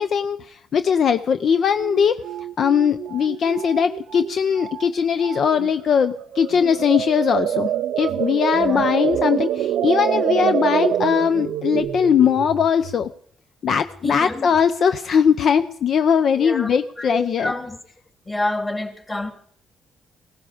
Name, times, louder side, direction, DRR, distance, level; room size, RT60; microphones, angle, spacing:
voice 1, 0.0-2.2 2.6-13.1 13.6-17.5, left 7 dB, 60° left, 0.6 m, -20 dB
sound 1, 1.5-1.6 1.8-4.3 4.6-4.9 5.2-5.7 6.1-13.1, right 10 dB, 80° right, 0.6 m, -25 dB
voice 2, 8.5-8.9 14.0-14.5 16.3-17.8 18.2-19.3, left 2 dB, 20° left, 2.9 m, -28 dB
17.0 x 15.5 x 5.0 m
cardioid pair, 90°, 0 cm